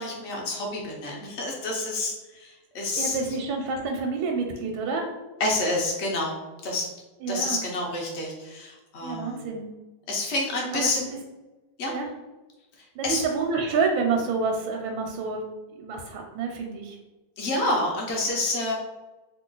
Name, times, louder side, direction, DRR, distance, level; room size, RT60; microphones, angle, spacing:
voice 1, 0.0-3.2 5.4-6.3 6.6-6.9 7.3-9.5 10.1-11.0 11.8-11.9 13.0-13.2 17.4-18.7, left 2 dB, 65° left, -2 dB, 0.6 m, -28 dB
voice 2, 3.0-5.1 7.2-7.6 9.0-9.7 10.7-10.9 11.9-12.1 12.9-15.4 15.8-17.0, right 4 dB, 90° right, 2 dB, 1.4 m, -28 dB
3.0 x 2.5 x 3.7 m, 1.1 s
omnidirectional pair, 2.1 m